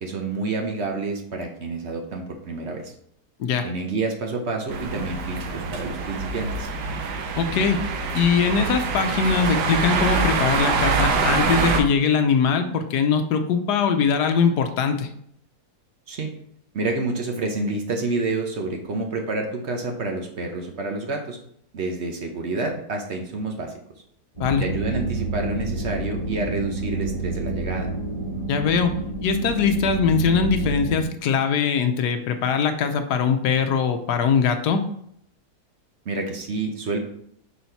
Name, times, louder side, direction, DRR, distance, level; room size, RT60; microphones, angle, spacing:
voice 1, 0.0-2.9 3.6-6.7 16.1-16.3 16.7-21.4 21.7-23.7 24.6-27.9 36.1-37.0, right 3 dB, 50° right, 3 dB, 0.9 m, -28 dB
sound 1, 4.7-11.8, right 4 dB, 80° right, 1.4 m, -25 dB
voice 2, 7.4-7.8 8.1-15.1 24.4-24.6 28.5-28.9 29.2-34.8, left 6 dB, 75° left, 7 dB, 1.2 m, -21 dB
sound 2, 24.4-31.0, right 2 dB, 20° right, 2.2 m, -29 dB
5.6 x 4.1 x 4.5 m, 0.68 s
omnidirectional pair, 1.8 m